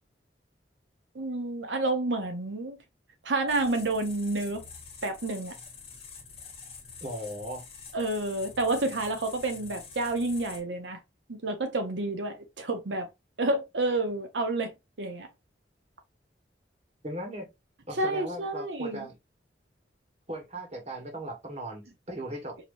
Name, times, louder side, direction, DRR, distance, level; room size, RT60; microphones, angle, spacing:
voice 1, 1.1-2.8 3.2-4.6 5.0-5.6 7.9-11.0 11.3-13.1 13.4-15.3 17.9-19.1, right 2 dB, 85° right, 0.8 m, -29 dB
sound 1, 3.5-10.6, left 5 dB, 35° left, 1.1 m, -46 dB
voice 2, 7.0-7.6 17.0-17.5 17.9-19.1 20.3-22.6, right 1 dB, 35° right, 1.4 m, -38 dB
4.9 x 2.9 x 2.6 m
head